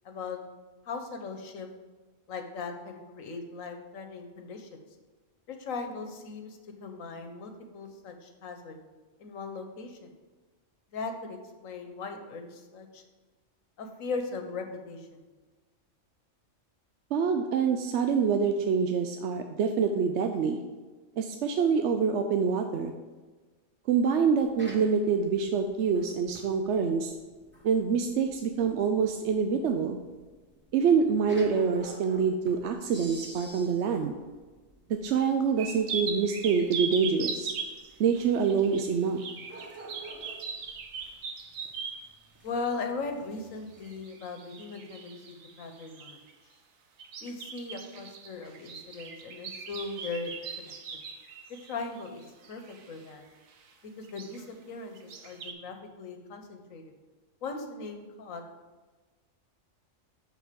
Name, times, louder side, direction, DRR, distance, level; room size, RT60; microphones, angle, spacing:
voice 1, 0.0-0.4 0.8-1.7 2.3-4.8 5.5-8.8 9.2-10.1 10.9-13.0 13.8-15.3 42.4-46.2 47.2-50.7 51.6-53.2 54.0-56.9 57.4-58.4, left 4 dB, 90° left, 5 dB, 1.4 m, -38 dB
voice 2, 17.1-20.6 21.2-23.0 23.9-27.1 27.6-30.0 30.7-34.1 34.9-37.5 38.0-39.2, right 6 dB, 65° right, 5 dB, 0.8 m, -26 dB
sound 1, 24.2-44.0, right 1 dB, 10° right, 1.4 m, -51 dB
sound 2, 35.6-42.1 43.7-46.3 47.0-53.1 53.5-53.7 54.0-54.4 54.9-55.5, right 5 dB, 85° right, 1.3 m, -39 dB
6.9 x 6.2 x 5.1 m, 1.3 s
omnidirectional pair, 1.3 m